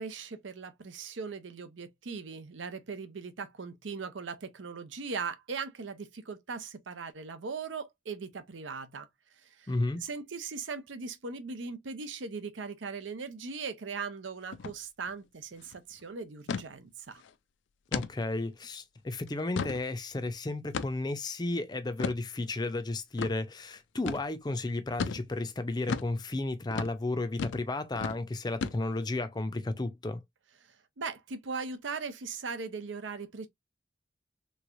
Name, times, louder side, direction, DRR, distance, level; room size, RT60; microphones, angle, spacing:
voice 1, 0.0-9.1 9.4-9.7 10.0-17.2 31.0-33.5, right 5 dB, 90° right, 0.6 m, -39 dB
voice 2, 9.7-10.0 17.9-30.2, left 2 dB, 20° left, 0.5 m, -33 dB
sound 1, 14.5-14.8 15.1-15.2 15.5-15.8 16.5-16.7 17.2-17.3 17.9-18.1 18.6-18.7 19.3-19.8 20.7-21.1 22.0-22.2 23.2-23.3 24.1-24.3 25.0-25.2 25.9-26.1 26.7-26.9 27.4-27.7 28.0-28.2 28.6-29.1, left 5 dB, 80° left, 0.4 m, -34 dB
3.4 x 3.1 x 2.4 m
head